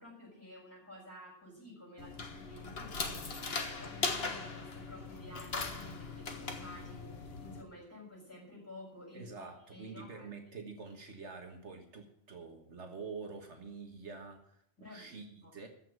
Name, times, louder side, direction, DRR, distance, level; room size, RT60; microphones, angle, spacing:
voice 1, 0.0-9.4 9.7-10.3 14.8-15.5, left 1 dB, 10° left, -2 dB, 6.5 m, -52 dB
sound 1, 2.0-7.6, left 4 dB, 55° left, 1.7 m, -39 dB
voice 2, 9.1-15.7, right 4 dB, 70° right, 4 dB, 1.8 m, -47 dB
14.5 x 5.8 x 9.2 m, 0.68 s
omnidirectional pair, 1.2 m